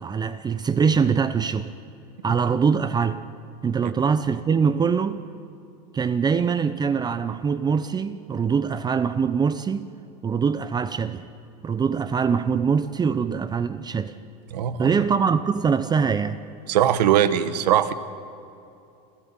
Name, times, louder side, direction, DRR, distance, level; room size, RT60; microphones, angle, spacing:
voice 1, 0.0-1.7 2.2-3.2 3.6-5.2 5.9-9.9 10.2-11.3 11.6-14.1 14.8-16.4, right 6 dB, 20° right, 12 dB, 0.7 m, -23 dB
voice 2, 14.5-14.9 16.7-17.9, right 10 dB, 85° right, 13 dB, 1.2 m, -21 dB
29.0 x 11.5 x 9.0 m, 2.7 s
supercardioid pair, 115°, 21 cm